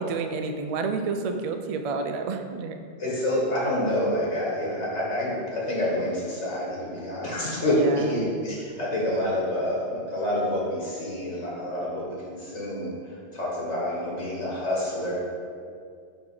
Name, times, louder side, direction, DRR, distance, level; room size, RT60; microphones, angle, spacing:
voice 1, 0.0-2.8 7.7-8.4, right 4 dB, 60° right, 6 dB, 0.4 m, -30 dB
voice 2, 3.0-12.9 13.3-15.1, left 1 dB, 80° left, -5 dB, 1.7 m, -27 dB
7.0 x 3.4 x 5.3 m, 2.2 s
omnidirectional pair, 1.2 m